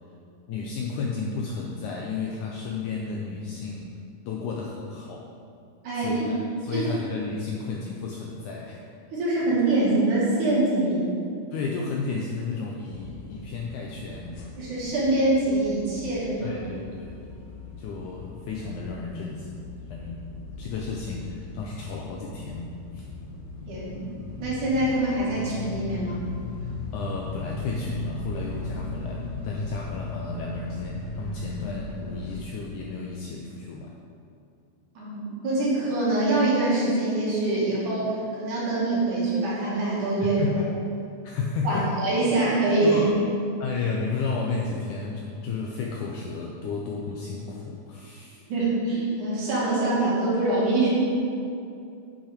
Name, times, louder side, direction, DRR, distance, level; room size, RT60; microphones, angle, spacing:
voice 1, 0.5-3.9 4.3-5.3 5.9-8.8 11.5-14.4 16.4-17.2 17.8-19.6 19.9-20.3 20.6-23.1 26.6-33.9 40.2-40.6 41.2-41.9 42.8-43.1 43.6-48.4, left 4 dB, 85° left, -1 dB, 1.8 m, -33 dB
voice 2, 5.8-6.3 6.7-6.9 9.1-11.1 14.6-16.7 23.7-24.1 24.4-26.2 35.0-40.6 41.6-43.0 48.5-50.9, right 2 dB, 60° right, -7 dB, 3.4 m, -24 dB
sound 1, 12.9-32.4, left 2 dB, 65° left, 2.3 m, -38 dB
8.5 x 5.6 x 5.2 m, 2.5 s
omnidirectional pair, 4.2 m